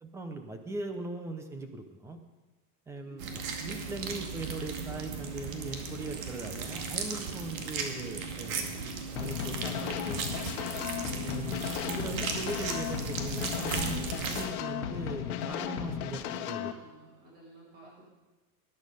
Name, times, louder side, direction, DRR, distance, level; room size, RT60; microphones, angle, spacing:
voice 1, 0.0-2.2 2.9-3.2 3.5-10.4 11.2-16.7 17.8-18.1, right 2 dB, 5° right, 7 dB, 0.6 m, -40 dB
voice 2, 3.0-3.5 16.6-18.1, right 2 dB, 20° right, -5 dB, 4.1 m, -55 dB
sound 1, 3.2-14.5, right 5 dB, 70° right, 2.3 m, -36 dB
sound 2, 9.2-16.7, left 10 dB, 80° left, 1.4 m, -35 dB
19.5 x 10.5 x 5.3 m, 1.1 s
supercardioid pair, 175°, 43 cm